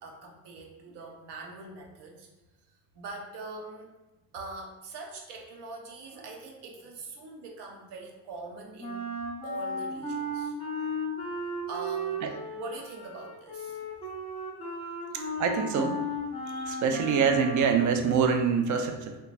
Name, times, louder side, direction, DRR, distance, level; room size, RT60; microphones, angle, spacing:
voice 1, 0.0-2.3 2.9-3.9 4.3-9.0 9.4-10.5 11.7-12.2 12.5-13.8, right 3 dB, 60° right, 0 dB, 0.8 m, -42 dB
Wind instrument woodwind instrument, 8.8-17.8, equal, 15° left, 0.8 m, -35 dB
voice 2, 15.1-16.0 16.5-19.2, right 6 dB, 45° right, 5 dB, 0.5 m, -25 dB
2.9 x 2.3 x 2.5 m, 1.1 s
supercardioid pair, 75°, 45 cm